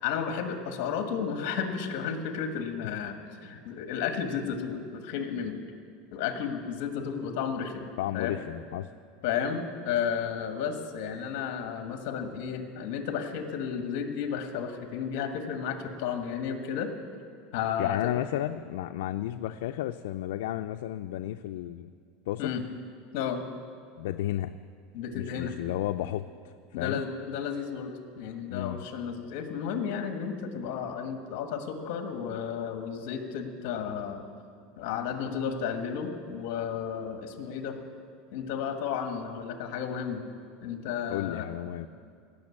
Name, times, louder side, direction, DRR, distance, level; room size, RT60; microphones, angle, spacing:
voice 1, 0.0-5.6 6.1-8.4 9.2-16.9 17.5-18.1 22.4-22.6 23.1-23.4 24.9-25.5 26.7-34.2 34.8-37.8 38.3-40.2 40.6-41.5, left 7 dB, 50° left, 6 dB, 1.4 m, -33 dB
voice 2, 8.0-8.9 17.8-21.9 22.3-22.5 24.0-24.5 25.1-27.0 28.5-28.8 41.1-41.9, left 13 dB, 75° left, 8 dB, 0.3 m, -33 dB
17.0 x 6.5 x 8.5 m, 2.3 s
supercardioid pair, 175°, 0 cm